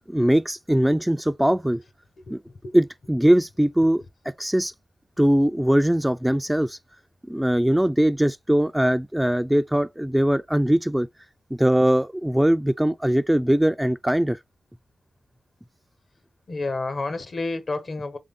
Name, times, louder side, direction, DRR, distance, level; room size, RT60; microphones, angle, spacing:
voice 1, 0.1-1.8 2.3-2.4 2.7-4.0 4.4-4.7 5.2-6.8 7.2-11.1 11.5-14.4, right 1 dB, 5° right, 0.3 m, -21 dB
voice 2, 2.2-2.8 3.8-3.9 16.5-18.2, left 3 dB, 60° left, 1.1 m, -30 dB
3.7 x 3.5 x 3.7 m
cardioid pair, 55°, 0 cm